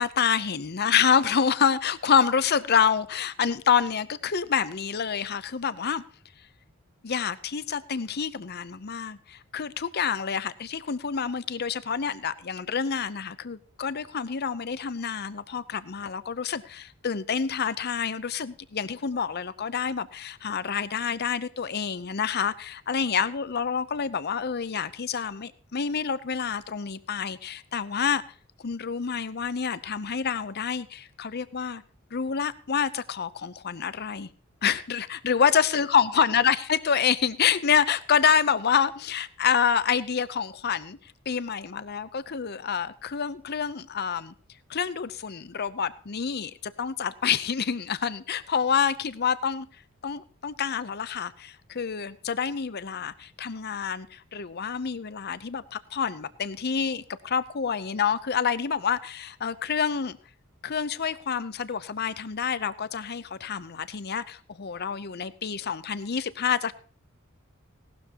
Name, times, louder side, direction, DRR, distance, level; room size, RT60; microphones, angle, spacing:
voice 1, 0.0-6.0 7.0-28.2 28.6-31.8 32.1-34.3 34.6-41.0 41.3-44.3 44.7-49.7 50.0-60.2 60.6-66.7, left 7 dB, 50° left, 0.7 m, -27 dB
17.5 x 12.5 x 2.9 m
head